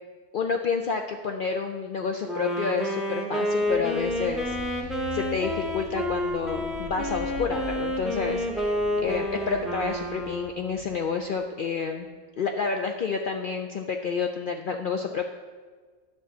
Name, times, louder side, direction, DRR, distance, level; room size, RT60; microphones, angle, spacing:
voice 1, 0.3-15.3, left 5 dB, 85° left, 3 dB, 0.4 m, -29 dB
Wind instrument woodwind instrument, 2.2-10.9, left 1 dB, ahead, 0.5 m, -29 dB
sound 1, 3.5-12.0, left 1 dB, 55° left, 1.2 m, -43 dB
10.0 x 3.7 x 7.0 m, 1.5 s
omnidirectional pair, 1.5 m